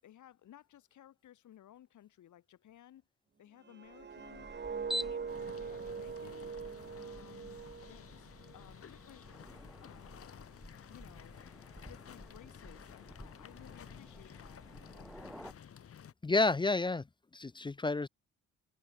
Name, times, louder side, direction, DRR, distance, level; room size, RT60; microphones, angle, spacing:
voice 1, 0.0-3.0 3.4-4.5 5.0-6.6 6.9-9.2 9.8-10.5 10.9-11.4 11.8-14.6, left 12 dB, 75° left, 6.2 m, -58 dB
sound 1, 3.6-8.7 9.0-9.4, right 6 dB, 35° right, 2.4 m, -43 dB
sound 2, 3.9-15.5, equal, ahead, 1.8 m, -49 dB
sound 3, 5.3-16.1, left 8 dB, 50° left, 1.8 m, -54 dB
voice 2, 16.2-17.0 17.3-18.1, left 3 dB, 15° left, 0.6 m, -30 dB
cardioid pair, 90°, 30 cm